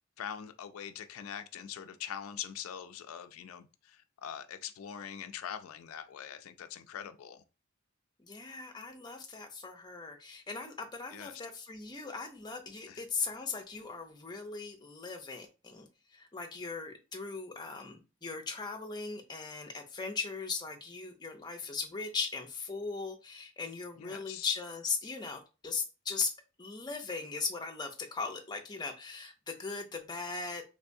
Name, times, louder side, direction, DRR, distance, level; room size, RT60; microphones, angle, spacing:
voice 1, 0.2-7.4 11.1-11.4 12.9-13.0 24.0-24.5, left 9 dB, 90° left, 0.3 m, -43 dB
voice 2, 8.2-15.9 16.1-26.3 26.6-30.6, left 4 dB, 20° left, 0.6 m, -38 dB
3.3 x 3.2 x 2.6 m
head